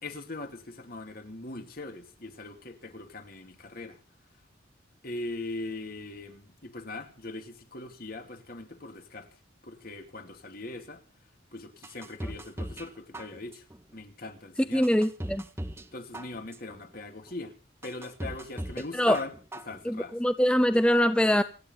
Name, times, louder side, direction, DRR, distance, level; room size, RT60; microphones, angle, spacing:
voice 1, 0.0-4.0 5.0-9.3 9.6-11.0 11.5-13.6 13.9-14.9 15.9-17.5 17.8-19.3 19.6-20.2, left 2 dB, 50° left, 2.7 m, -40 dB
sound 1, 11.8-12.9 13.1-13.8 14.3-14.4 14.8-15.9 16.1-16.8 17.3-17.4 17.8-18.8 19.1-19.8 20.1-20.2, right 1 dB, 15° right, 1.1 m, -38 dB
voice 2, 14.7-15.4 18.9-19.2 19.9-21.4, equal, 5° left, 0.6 m, -23 dB
28.5 x 9.8 x 4.0 m
head